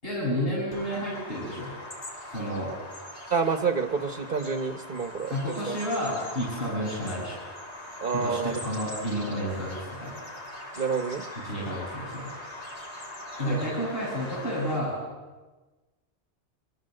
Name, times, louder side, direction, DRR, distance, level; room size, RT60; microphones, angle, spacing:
voice 1, 0.0-1.7 2.3-2.7 5.3-7.4 8.1-10.1 11.3-12.3 13.4-15.0, equal, 55° left, -7 dB, 8.0 m, -31 dB
Bird vocalization bird call bird song, 0.7-14.8, left 1 dB, 70° left, 4.3 m, -41 dB
voice 2, 3.3-5.8 8.0-8.6 10.8-11.2 11.6-11.7 13.4-13.7, right 5 dB, 45° right, 8 dB, 1.4 m, -28 dB
26.0 x 23.5 x 7.9 m, 1.2 s
omnidirectional pair, 1.2 m